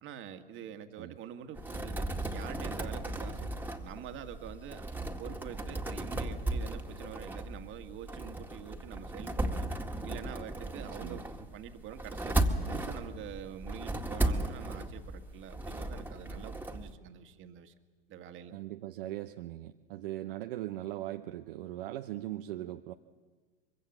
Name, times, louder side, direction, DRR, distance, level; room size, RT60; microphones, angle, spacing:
voice 1, 0.0-2.1 2.3-3.5 3.8-4.9 5.2-9.7 10.0-12.4 12.6-17.7 18.1-18.5, right 9 dB, 40° right, 7 dB, 1.9 m, -46 dB
sound 1, 1.6-16.9, right 1 dB, 5° right, 1.9 m, -36 dB
voice 2, 18.5-22.9, right 14 dB, 65° right, 7 dB, 0.9 m, -39 dB
24.0 x 23.5 x 7.3 m, 1.4 s
figure-of-eight pair, 80°, 30 cm